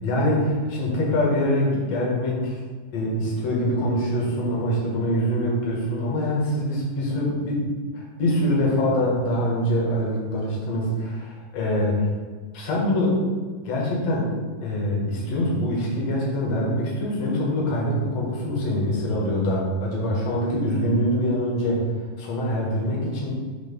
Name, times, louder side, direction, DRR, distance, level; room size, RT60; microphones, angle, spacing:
voice 1, 0.0-2.6 2.9-12.1 12.5-13.3 13.7-14.3 14.6-21.8 22.2-23.3, left 1 dB, 55° left, -3 dB, 2.2 m, -24 dB
8.1 x 3.0 x 5.3 m, 1.5 s
omnidirectional pair, 4.1 m